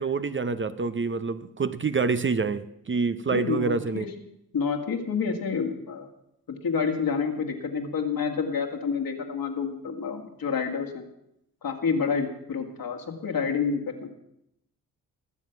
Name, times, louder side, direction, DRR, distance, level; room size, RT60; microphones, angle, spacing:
voice 1, 0.0-4.0, right 4 dB, 30° right, 12 dB, 0.8 m, -27 dB
voice 2, 3.3-4.1 4.5-6.1 6.6-11.1 11.6-14.1, left 5 dB, 65° left, 3 dB, 2.2 m, -28 dB
20.0 x 7.5 x 5.9 m, 0.80 s
supercardioid pair, 50°, 38 cm